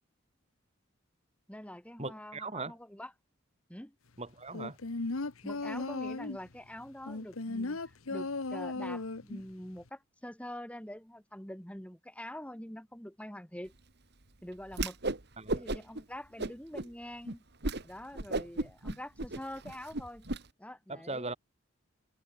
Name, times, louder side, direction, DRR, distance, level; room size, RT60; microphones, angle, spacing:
voice 1, 1.5-3.1 3.7-3.9 5.4-13.7 14.4-15.0 15.5-17.4 17.8-20.3 20.6-21.3, left 1 dB, 5° left, 2.4 m, -45 dB
voice 2, 2.0-2.7 4.2-4.8 15.4-15.6 20.9-21.3, right 3 dB, 30° right, 4.1 m, -39 dB
sound 1, 4.5-6.5 7.1-9.5 9.8-9.9, left 3 dB, 90° left, 1.2 m, -36 dB
Whoosh swoosh swish, 14.7-15.2 15.5-16.0 16.4-16.9 17.3-17.4 17.6-17.8 18.1-20.4, right 2 dB, 50° right, 2.0 m, -34 dB
head